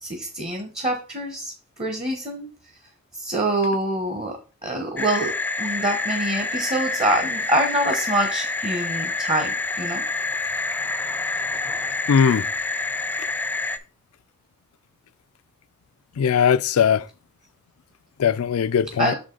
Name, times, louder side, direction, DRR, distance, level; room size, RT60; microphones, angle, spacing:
voice 1, 0.0-2.5 3.1-4.4 4.6-5.3 5.6-10.1 19.0-19.1, right 1 dB, 30° right, 0.9 m, -25 dB
sound 1, 5.0-13.8, left 3 dB, 10° left, 0.4 m, -27 dB
voice 2, 12.1-12.5 16.2-17.1 18.2-19.1, left 7 dB, 80° left, 0.4 m, -19 dB
6.1 x 4.8 x 3.8 m
head